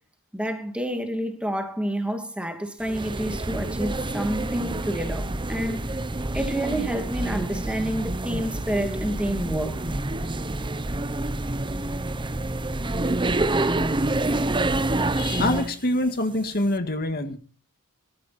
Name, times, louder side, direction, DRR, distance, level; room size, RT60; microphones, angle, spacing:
voice 1, 0.3-5.9 6.3-9.8, right 1 dB, 5° right, 2.6 m, -29 dB
sound 1, 2.8-15.8, right 2 dB, 20° right, 0.9 m, -27 dB
voice 2, 15.2-17.4, left 1 dB, 45° left, 2.0 m, -25 dB
19.5 x 14.0 x 4.3 m
head